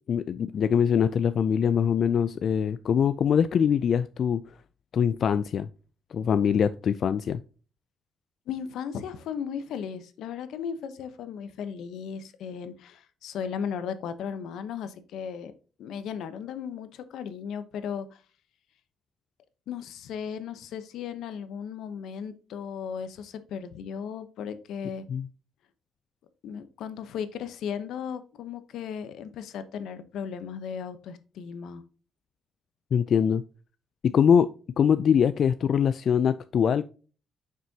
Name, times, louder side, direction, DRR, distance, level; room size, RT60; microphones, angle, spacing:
voice 1, 0.1-4.6 4.9-5.7 6.1-7.4 25.1-25.3 32.9-33.4 34.0-34.5 34.8-36.8, left 7 dB, 55° left, 0.3 m, -23 dB
voice 2, 8.5-15.5 15.8-18.2 19.7-25.0 26.4-31.8, left 7 dB, 85° left, 0.8 m, -36 dB
7.4 x 6.0 x 2.8 m
cardioid pair, 115°, 0 cm